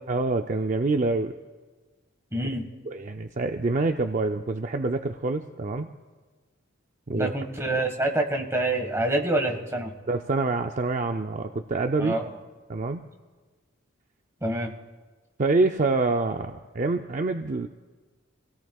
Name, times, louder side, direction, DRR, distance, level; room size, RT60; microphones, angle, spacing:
voice 1, 0.1-1.3 2.9-5.9 7.1-7.3 7.7-7.9 10.1-12.2 12.7-13.0 15.4-17.7, right 3 dB, 40° right, 5 dB, 0.5 m, -26 dB
voice 2, 2.3-2.7 7.1-9.9 12.0-12.3 14.4-14.7, right 1 dB, 15° right, 3 dB, 1.5 m, -26 dB
27.0 x 17.0 x 2.4 m, 1.4 s
head